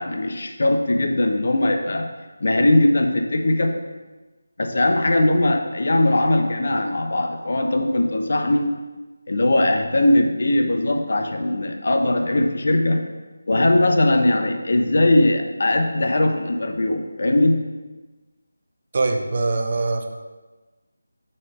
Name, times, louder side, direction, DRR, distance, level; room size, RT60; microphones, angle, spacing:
voice 1, 0.0-2.1 2.4-3.8 4.6-8.7 9.3-13.0 13.5-17.7, left 1 dB, 55° left, 5 dB, 0.6 m, -20 dB
voice 2, 18.9-20.0, right 3 dB, 40° right, 4 dB, 0.5 m, -22 dB
7.2 x 4.3 x 3.3 m, 1.2 s
figure-of-eight pair, 165°, 0 cm